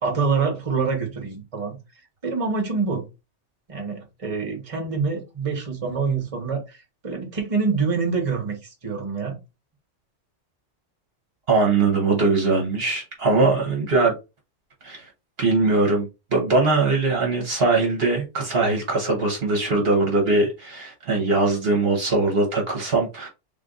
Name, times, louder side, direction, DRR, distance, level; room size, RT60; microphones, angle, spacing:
voice 1, 0.0-1.8 2.2-3.0 3.7-6.8 7.0-9.4 13.3-13.6, right 5 dB, 30° right, 1.1 m, -26 dB
voice 2, 11.5-14.1 14.8-15.0 15.4-23.3, right 3 dB, 55° right, 1.1 m, -21 dB
3.6 x 2.5 x 3.8 m
omnidirectional pair, 1.3 m